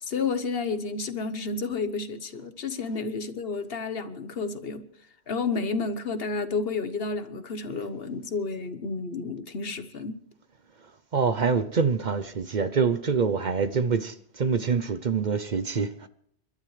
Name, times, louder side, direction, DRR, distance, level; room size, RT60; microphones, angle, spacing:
voice 1, 0.0-4.9 5.3-10.2, left 4 dB, 65° left, 1.2 m, -31 dB
voice 2, 11.1-16.1, right 5 dB, 50° right, 0.8 m, -25 dB
30.0 x 12.5 x 3.3 m
omnidirectional pair, 1.1 m